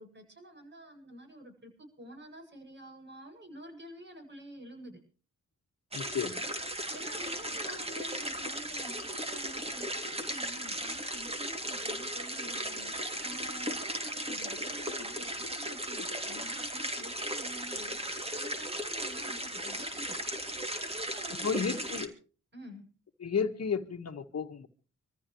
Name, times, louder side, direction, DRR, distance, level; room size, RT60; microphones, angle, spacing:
voice 1, 0.0-5.0 6.9-20.2 20.8-21.9 22.5-22.9, right 1 dB, 35° right, 4 dB, 7.8 m, -49 dB
voice 2, 5.9-6.5 21.4-22.1 23.2-24.7, left 6 dB, 55° left, 4 dB, 1.7 m, -33 dB
sound 1, 5.9-22.1, right 1 dB, 20° right, 2.8 m, -36 dB
26.5 x 14.5 x 3.2 m, 0.38 s
cardioid pair, 75°, 31 cm